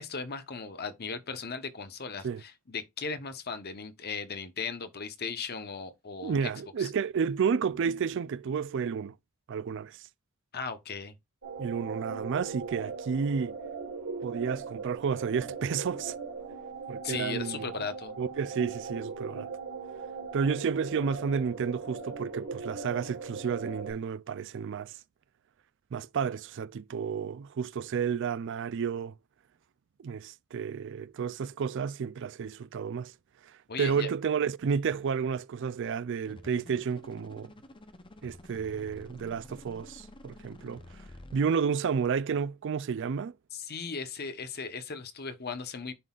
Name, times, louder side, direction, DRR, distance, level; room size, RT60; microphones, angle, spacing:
voice 1, 0.0-6.5 6.8-6.9 10.5-11.1 17.0-18.2 33.7-34.1 43.5-45.9, left 5 dB, 45° left, 1.0 m, -37 dB
voice 2, 6.2-9.1 9.5-10.0 11.6-13.6 14.2-16.1 16.9-17.6 18.2-19.5 20.3-24.9 25.9-29.1 30.0-33.1 33.8-37.5 38.2-40.8 41.3-43.3, right 6 dB, 55° right, 0.4 m, -31 dB
sound 1, 11.4-23.9, right 4 dB, 70° right, 1.8 m, -39 dB
sound 2, 36.3-41.4, left 1 dB, 20° left, 0.7 m, -50 dB
11.0 x 3.9 x 2.4 m
head